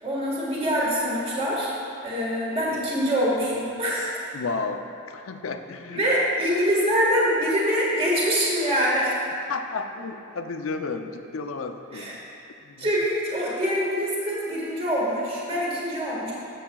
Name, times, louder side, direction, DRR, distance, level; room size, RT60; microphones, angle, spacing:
voice 1, 0.0-1.7 2.0-4.1 5.9-9.2 11.9-12.1 12.8-16.3, equal, 30° right, -5 dB, 1.6 m, -24 dB
voice 2, 4.3-6.1 9.5-12.2 12.6-12.9, left 4 dB, 65° left, 7 dB, 0.5 m, -32 dB
13.0 x 7.6 x 2.3 m, 2.6 s
head